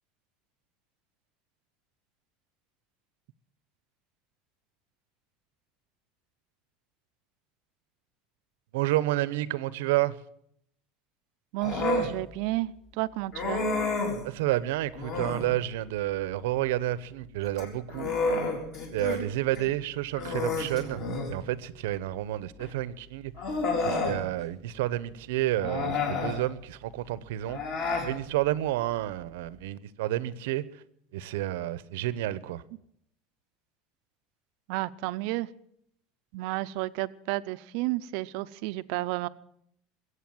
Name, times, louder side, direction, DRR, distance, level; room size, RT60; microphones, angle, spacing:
voice 1, 8.7-10.2 14.2-18.1 18.9-21.0 21.3-23.3 23.8-27.6 28.0-30.6 31.1-32.6, right 15 dB, 85° right, 0.8 m, -30 dB
voice 2, 11.5-12.7 13.0-13.6 34.7-35.5 36.3-39.3, right 19 dB, 55° right, 0.6 m, -31 dB
Human voice, 11.6-12.1 13.3-14.2 15.0-15.5 17.4-19.2 19.5-19.7 20.2-21.4 22.6-22.7 23.4-24.2 25.6-26.4 27.4-28.1, left 3 dB, 40° left, 4.0 m, -30 dB
22.0 x 8.3 x 7.7 m
cardioid pair, 175°, 0 cm